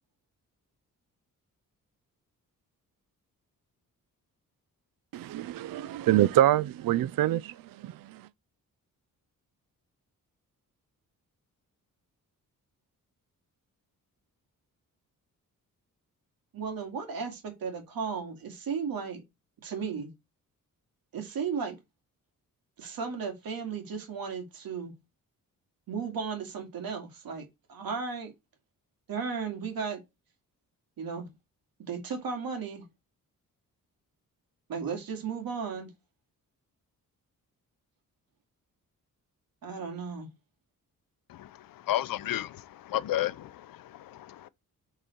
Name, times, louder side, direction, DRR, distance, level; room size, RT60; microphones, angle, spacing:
voice 1, 5.1-7.5 7.8-7.9, right 13 dB, 75° right, 0.5 m, -25 dB
voice 2, 16.5-19.2 19.6-20.1 21.1-21.8 22.8-24.9 25.9-28.3 29.1-30.0 31.0-31.3 31.9-32.9 34.7-35.9 39.6-40.3, right 5 dB, 90° right, 2.4 m, -35 dB
voice 3, 41.3-44.5, left 13 dB, 75° left, 0.6 m, -33 dB
7.7 x 4.1 x 4.6 m
wide cardioid pair, 170°, 34 cm